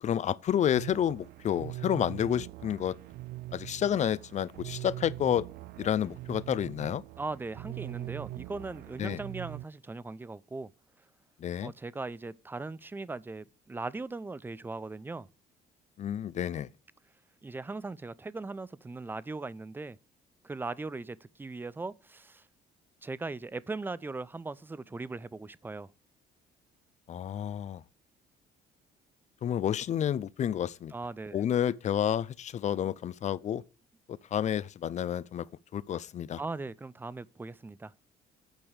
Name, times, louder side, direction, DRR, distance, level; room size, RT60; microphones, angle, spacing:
voice 1, 0.0-3.0 3.5-5.5 5.8-7.0 9.0-9.2 11.4-11.7 16.0-16.7 27.1-27.8 29.4-30.9 31.3-33.6 34.3-35.5 35.7-36.4, left 10 dB, 45° left, 0.6 m, -30 dB
sound 1, 0.7-9.7, right 17 dB, 65° right, 0.4 m, -42 dB
voice 2, 7.2-10.7 11.6-15.3 17.4-20.0 20.4-22.4 23.0-25.9 30.9-31.4 36.4-37.9, right 3 dB, 10° right, 0.5 m, -39 dB
8.9 x 5.3 x 8.0 m
cardioid pair, 110°, 17 cm